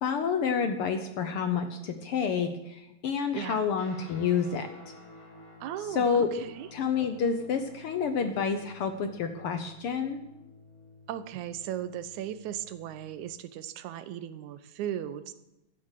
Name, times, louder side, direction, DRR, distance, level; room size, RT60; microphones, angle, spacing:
voice 1, 0.0-4.7 5.9-6.3 6.7-10.2, left 6 dB, 65° left, 8 dB, 1.5 m, -29 dB
voice 2, 3.3-3.7 5.6-6.7 11.1-15.3, right 11 dB, 80° right, 13 dB, 2.2 m, -37 dB
Guitar, 3.7-13.4, left 2 dB, 90° left, 5.5 m, -52 dB
15.0 x 11.0 x 6.5 m, 0.92 s
omnidirectional pair, 3.4 m